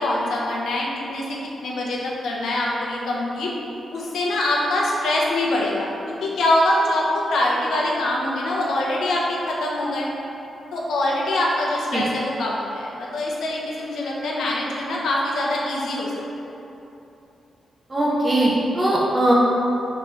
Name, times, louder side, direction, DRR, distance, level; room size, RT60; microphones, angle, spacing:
voice 1, 0.0-3.5 3.9-10.1 10.7-16.1, left 1 dB, 85° left, -3 dB, 0.7 m, -24 dB
voice 2, 17.9-19.3, right 1 dB, 25° right, -5 dB, 0.7 m, -20 dB
3.6 x 3.1 x 3.9 m, 2.9 s
cardioid pair, 75°, 0 cm